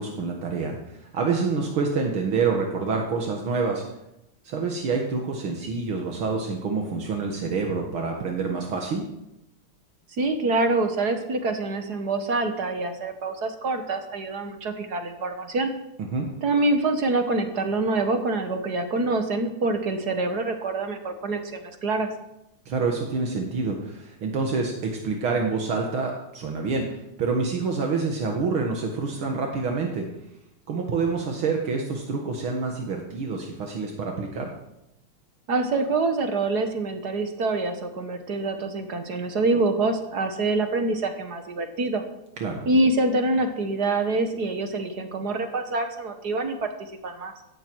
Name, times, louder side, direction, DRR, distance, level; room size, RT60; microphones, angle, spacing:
voice 1, 0.0-3.8 4.4-9.0 16.1-16.3 22.7-30.1 30.7-34.5 42.4-42.6, right 4 dB, 70° right, 1 dB, 2.4 m, -27 dB
voice 2, 10.2-15.7 16.4-22.1 35.5-42.0 42.7-46.7 47.0-47.3, right 2 dB, 50° right, 6 dB, 1.8 m, -25 dB
16.5 x 14.0 x 4.7 m, 0.88 s
omnidirectional pair, 2.4 m